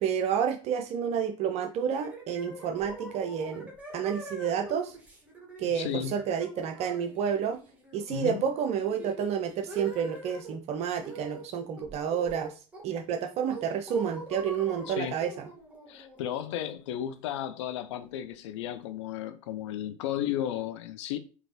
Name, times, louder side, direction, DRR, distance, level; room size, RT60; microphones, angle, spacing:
voice 1, 0.0-5.0 5.6-7.6 7.9-12.5 12.8-15.5, right 8 dB, 40° right, 0.5 m, -30 dB
sound 1, 2.0-10.6 11.0-11.5 11.8-13.0 13.5-17.2, right 2 dB, 5° right, 1.3 m, -44 dB
voice 2, 5.7-6.2 8.1-8.4 14.9-15.2 15.9-21.2, left 11 dB, 60° left, 0.4 m, -34 dB
5.1 x 2.8 x 2.8 m
figure-of-eight pair, 70°, 17 cm